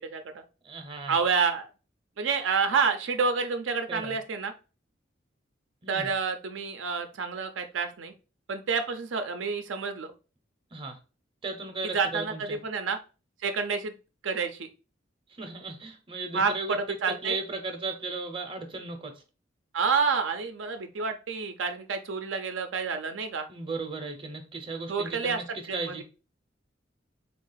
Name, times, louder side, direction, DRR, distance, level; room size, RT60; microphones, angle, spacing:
voice 1, 0.1-0.4 1.1-1.7 2.2-4.5 5.9-8.1 8.5-10.1 11.8-13.0 13.4-13.9 14.2-14.7 16.3-17.4 19.7-23.5 24.9-25.4 25.7-26.0, right 5 dB, 75° right, 0.5 m, -29 dB
voice 2, 0.6-1.2 3.9-4.2 5.8-6.1 10.7-11.0 11.4-12.6 15.4-16.8 17.2-19.2 23.5-25.5 25.7-26.0, right 3 dB, 30° right, 0.7 m, -36 dB
3.5 x 2.4 x 3.9 m
head